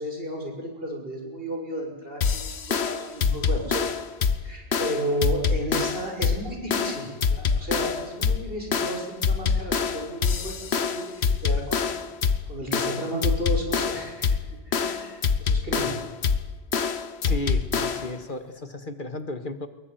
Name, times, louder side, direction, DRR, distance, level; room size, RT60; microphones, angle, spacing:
voice 1, 0.0-3.8 4.4-11.8 12.5-14.4 14.7-16.0 17.9-18.0, right 1 dB, 60° right, 1 dB, 6.9 m, -33 dB
sound 1, 2.2-18.2, left 5 dB, 80° left, 1.4 m, -26 dB
voice 2, 17.2-19.7, left 1 dB, 50° left, 9 dB, 2.0 m, -34 dB
23.0 x 22.0 x 9.4 m, 1.0 s
omnidirectional pair, 1.1 m